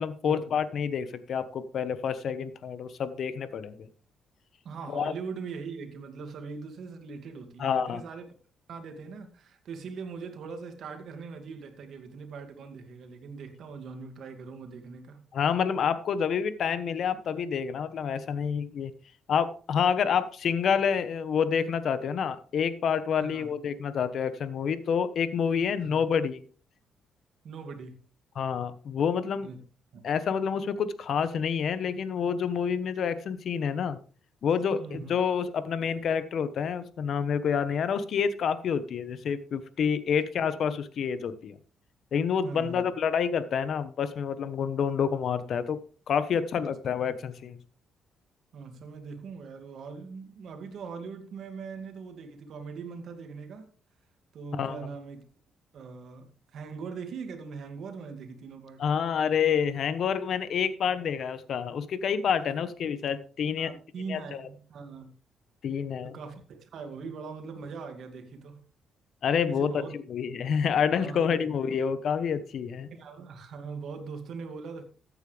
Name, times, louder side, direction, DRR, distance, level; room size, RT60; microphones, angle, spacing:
voice 1, 0.0-3.9 4.9-5.1 7.6-8.0 15.3-18.9 19.3-26.4 28.3-29.5 30.0-34.0 34.4-41.5 42.1-45.8 46.1-47.6 54.5-54.8 58.8-63.7 64.1-64.2 65.6-66.1 69.2-69.8 70.1-72.9, left 7 dB, 60° left, 1.1 m, -28 dB
voice 2, 4.6-8.3 8.7-15.2 23.2-23.5 25.8-26.0 27.4-28.0 29.4-29.6 29.9-30.0 34.8-35.2 40.4-40.5 42.4-42.9 46.6-46.7 48.5-53.7 54.3-55.3 55.7-59.0 63.6-65.2 66.0-68.6 69.5-70.0 70.9-71.4 71.7-71.8 72.9-74.8, right 5 dB, 65° right, 2.2 m, -41 dB
14.0 x 9.0 x 3.4 m
cardioid pair, 90°, 0 cm